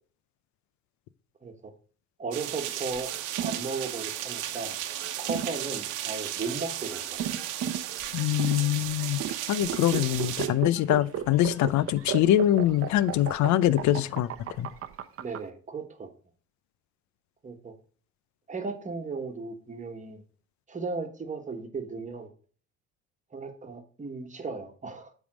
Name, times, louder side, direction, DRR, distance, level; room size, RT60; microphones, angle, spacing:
voice 1, 1.4-1.7 2.2-3.1 3.4-4.8 5.2-7.3 15.2-16.1 17.4-17.7 18.5-20.2 20.7-22.3 23.3-25.1, right 4 dB, 25° right, 1.4 m, -36 dB
sound 1, 2.3-10.5, right 12 dB, 85° right, 1.0 m, -35 dB
sound 2, 2.9-15.4, right 9 dB, 45° right, 0.8 m, -35 dB
voice 2, 8.1-9.2 9.5-14.3 14.6-14.7, left 12 dB, 65° left, 0.6 m, -24 dB
8.3 x 3.6 x 6.2 m
cardioid pair, 95°, 30 cm